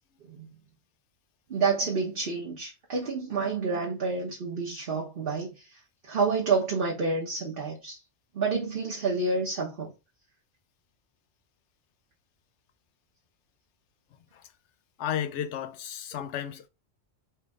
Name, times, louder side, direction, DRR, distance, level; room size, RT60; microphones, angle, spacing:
voice 1, 1.5-8.0 8.3-9.9, right 4 dB, 45° right, 1.3 m, -29 dB
voice 2, 15.0-16.7, left 9 dB, 65° left, 0.9 m, -33 dB
4.5 x 3.2 x 3.5 m
omnidirectional pair, 1.3 m